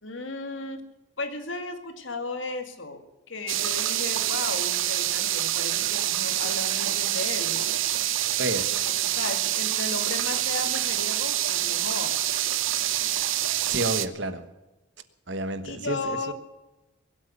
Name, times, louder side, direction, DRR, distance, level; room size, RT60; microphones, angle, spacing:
voice 1, 0.0-0.8 1.2-3.0 3.3-7.7 8.6-8.7 9.0-12.2 15.7-16.3, left 2 dB, 70° left, 7 dB, 2.1 m, -35 dB
sound 1, 3.5-14.1, right 13 dB, 75° right, 0.8 m, -26 dB
voice 2, 8.4-8.8 13.6-14.5 15.3-16.3, right 2 dB, 60° right, 11 dB, 1.3 m, -30 dB
22.5 x 8.3 x 6.8 m, 1.1 s
head